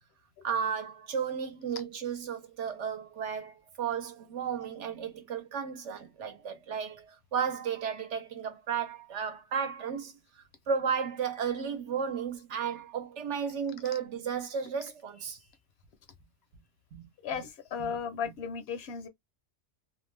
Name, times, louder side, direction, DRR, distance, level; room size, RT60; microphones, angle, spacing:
voice 1, 0.4-15.4 16.9-17.0 17.8-17.9, right 7 dB, 70° right, 1.0 m, -34 dB
voice 2, 17.2-19.1, left 6 dB, 65° left, 0.7 m, -35 dB
2.6 x 2.1 x 3.2 m
omnidirectional pair, 1.3 m